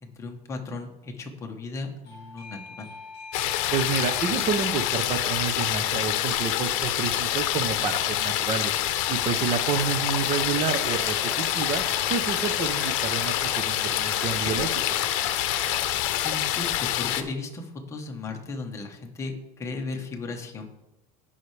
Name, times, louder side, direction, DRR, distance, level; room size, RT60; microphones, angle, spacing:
voice 1, 0.0-2.9 9.2-9.4 16.2-20.7, left 3 dB, 15° left, 2 dB, 1.1 m, -36 dB
Doorbell, 2.1-8.5, left 4 dB, 35° left, 2.8 m, -46 dB
sound 1, 3.3-17.2, left 13 dB, 70° left, 0.8 m, -26 dB
voice 2, 3.7-8.8 9.1-11.8 12.1-14.7, right 6 dB, 30° right, 9 dB, 0.6 m, -29 dB
sound 2, 10.7-15.9, left 2 dB, ahead, 1.9 m, -39 dB
16.0 x 5.6 x 3.3 m, 0.97 s
cardioid pair, 170°, 17 cm